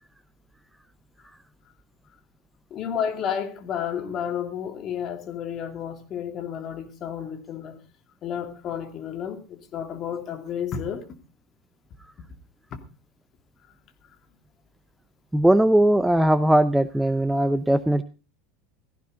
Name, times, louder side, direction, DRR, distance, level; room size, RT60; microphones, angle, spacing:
voice 1, 2.7-7.8 8.2-11.0 12.7-12.8, left 8 dB, 40° left, 2.6 m, -31 dB
voice 2, 15.3-18.0, right 1 dB, 5° right, 0.7 m, -19 dB
16.5 x 15.0 x 3.9 m
figure-of-eight pair, 80°, 0 cm